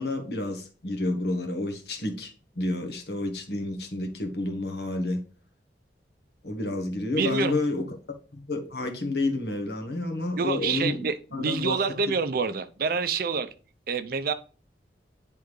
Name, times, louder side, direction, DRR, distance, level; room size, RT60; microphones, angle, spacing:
voice 1, 0.0-5.2 6.4-7.8 8.3-11.0 11.3-11.8, left 2 dB, 65° left, 1.3 m, -30 dB
voice 2, 7.1-7.5 10.4-13.5 13.9-14.3, right 5 dB, 55° right, 0.5 m, -27 dB
10.5 x 3.5 x 3.1 m
head